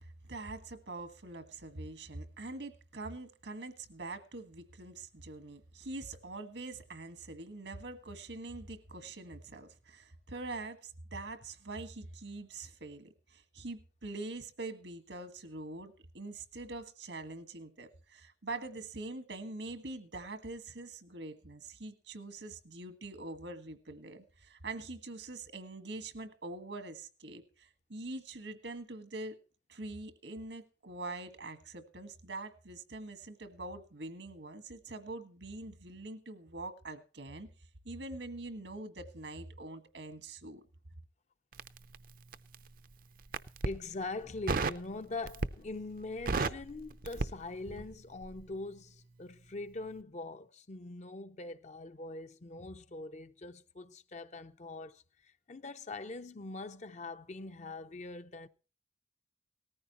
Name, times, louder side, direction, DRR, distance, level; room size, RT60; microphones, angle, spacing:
voice 1, 0.0-29.4 29.7-37.5 37.8-40.6, right 2 dB, 80° right, 1.7 m, -44 dB
Crackle, 41.5-42.7 43.2-43.8 44.5-44.9 45.2-45.7 46.0-47.9 48.2-48.4, right 3 dB, 50° right, 0.6 m, -34 dB
voice 2, 43.6-58.5, left 3 dB, 40° left, 0.7 m, -43 dB
18.5 x 14.0 x 3.0 m
head